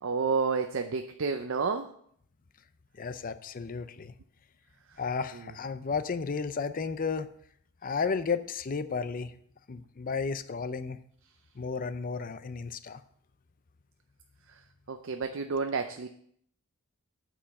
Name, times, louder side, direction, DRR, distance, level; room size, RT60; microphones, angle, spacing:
voice 1, 0.0-1.9 14.9-16.1, right 5 dB, 65° right, 7 dB, 0.6 m, -30 dB
voice 2, 3.0-4.1 5.0-7.3 7.8-9.3 9.7-11.0 11.6-13.0, left 5 dB, 40° left, 12 dB, 0.5 m, -33 dB
8.6 x 5.1 x 7.6 m, 0.65 s
head